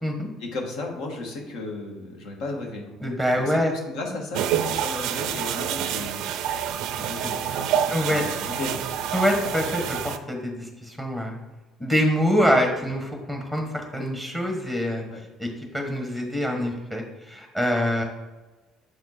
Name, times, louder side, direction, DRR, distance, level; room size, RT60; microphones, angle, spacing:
voice 1, 0.4-2.9 3.4-3.6 3.9-6.3 7.0-9.1 15.1-15.2, left 2 dB, 65° left, 1 dB, 1.3 m, -35 dB
voice 2, 3.0-3.7 7.2-7.3 7.9-8.2 9.1-11.4 11.8-15.0 15.4-15.5 15.7-18.0, equal, 10° left, 3 dB, 1.3 m, -25 dB
sound 1, 4.3-10.2, right 9 dB, 65° right, 0.4 m, -27 dB
6.6 x 4.3 x 4.2 m, 1.2 s
hypercardioid pair, 60°, 0 cm